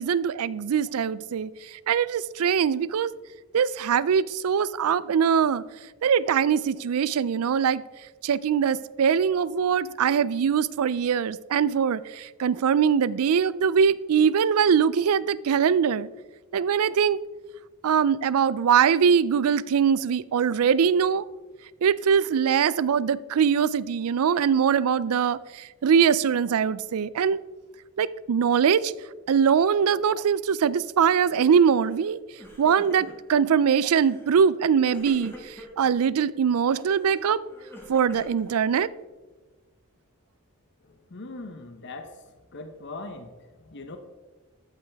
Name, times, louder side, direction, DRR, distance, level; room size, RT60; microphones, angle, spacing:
voice 1, 0.0-1.5 1.9-3.1 3.5-5.6 6.0-7.8 8.2-16.1 16.5-17.2 17.8-21.3 21.8-27.4 28.0-28.9 29.3-32.2 32.6-37.4 37.9-38.9, right 7 dB, 70° right, 19 dB, 0.4 m, -22 dB
Crying sobbing, 31.7-32.1 32.3-33.4 33.9-34.3 34.9-35.9 36.8-39.1, equal, 10° left, 1.8 m, -45 dB
voice 2, 41.1-42.1 42.5-43.3 43.7-44.0, left 2 dB, 50° left, 7 dB, 0.8 m, -39 dB
13.0 x 8.8 x 3.4 m, 1.2 s
head